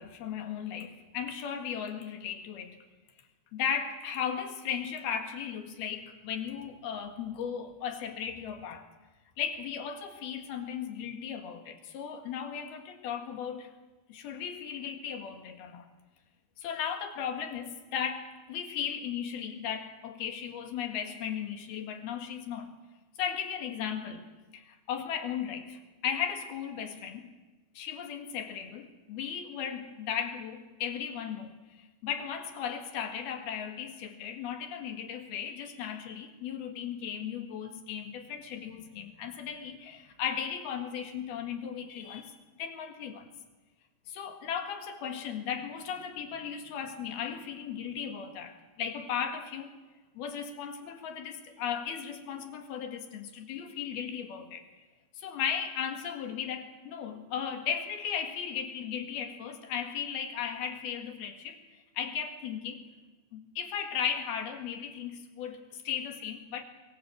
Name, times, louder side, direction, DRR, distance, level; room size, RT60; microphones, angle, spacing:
voice 1, 0.0-2.8 3.5-8.9 9.4-13.7 14.1-15.8 16.6-22.7 23.2-24.3 24.5-27.3 27.8-43.3 44.1-49.7 50.2-54.7 55.2-62.8 63.3-66.6, left 8 dB, 70° left, 5 dB, 3.6 m, -36 dB
23.0 x 21.0 x 7.8 m, 1.2 s
omnidirectional pair, 4.8 m